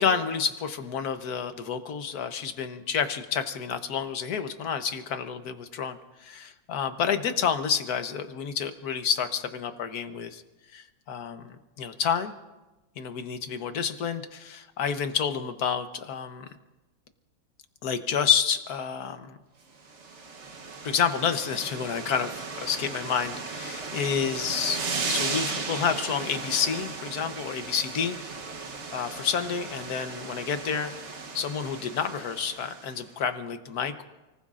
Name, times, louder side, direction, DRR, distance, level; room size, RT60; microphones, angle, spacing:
voice 1, 0.0-10.4 10.7-12.3 13.0-16.5 17.8-19.4 20.8-24.8 25.1-28.2 28.9-30.9 31.3-34.1, left 7 dB, 55° left, 8 dB, 1.3 m, -29 dB
sound 1, 19.8-33.0, right 4 dB, 45° right, 1.0 m, -36 dB
29.5 x 19.0 x 2.5 m, 1.1 s
omnidirectional pair, 2.2 m